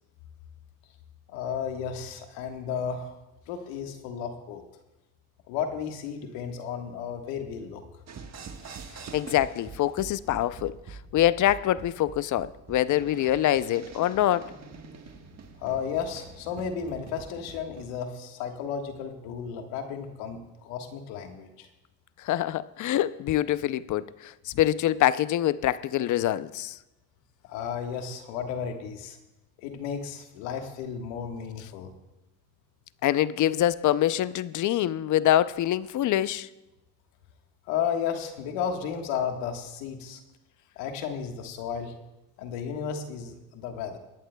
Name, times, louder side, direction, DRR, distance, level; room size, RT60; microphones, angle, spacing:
voice 1, 1.3-3.2 3.5-4.6 5.5-7.8 15.6-21.7 27.4-29.2 29.6-31.9 37.7-40.2 40.8-41.9 42.4-44.0, left 7 dB, 85° left, 1.5 m, -33 dB
sound 1, 8.1-17.9, right 5 dB, 35° right, 1.3 m, -45 dB
voice 2, 9.1-14.5 22.2-26.8 33.0-36.5, left 12 dB, 45° left, 0.5 m, -25 dB
21.0 x 11.0 x 2.2 m
supercardioid pair, 90°, 43 cm